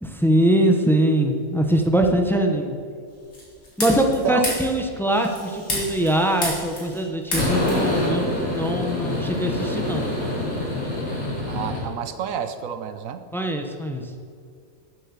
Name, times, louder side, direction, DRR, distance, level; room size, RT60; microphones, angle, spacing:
voice 1, 0.0-2.8 3.8-10.0 13.3-14.0, right 1 dB, ahead, 4 dB, 0.6 m, -22 dB
sound 1, 3.3-4.1 4.4-4.7 5.1-7.0 7.3-11.9, left 1 dB, 65° left, 3.3 m, -26 dB
voice 2, 3.9-4.5 11.5-13.2, right 8 dB, 65° right, 10 dB, 1.1 m, -29 dB
8.8 x 8.1 x 7.0 m, 2.1 s
omnidirectional pair, 1.6 m